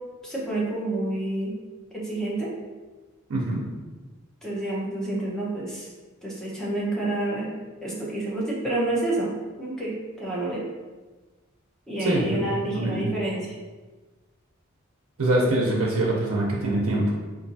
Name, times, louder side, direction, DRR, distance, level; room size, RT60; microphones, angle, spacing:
voice 1, 0.2-1.5 1.9-2.5 4.4-5.9 6.2-7.5 7.8-9.3 9.6-10.6 11.9-13.6, right 2 dB, 5° left, -6 dB, 0.8 m, -28 dB
voice 2, 3.3-3.6 12.0-13.1 15.2-17.1, right 1 dB, 85° right, -3 dB, 0.6 m, -24 dB
4.3 x 2.6 x 2.7 m, 1.3 s
head